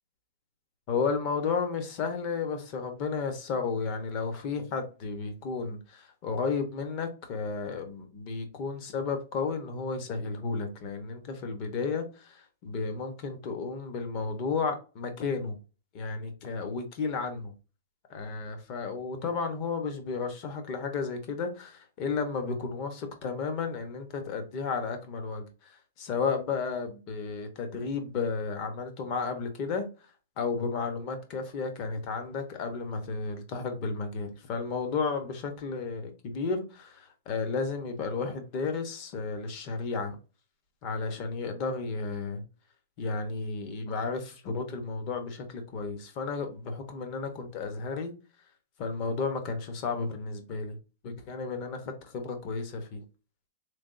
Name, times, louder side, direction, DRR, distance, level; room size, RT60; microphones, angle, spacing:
voice 1, 0.9-15.6 15.9-17.5 18.1-29.9 30.4-40.2 40.8-42.4 43.0-48.1 48.8-50.8 51.0-53.0, left 4 dB, 30° left, 0.8 m, -33 dB
3.6 x 3.4 x 2.5 m
supercardioid pair, 170°, 0 cm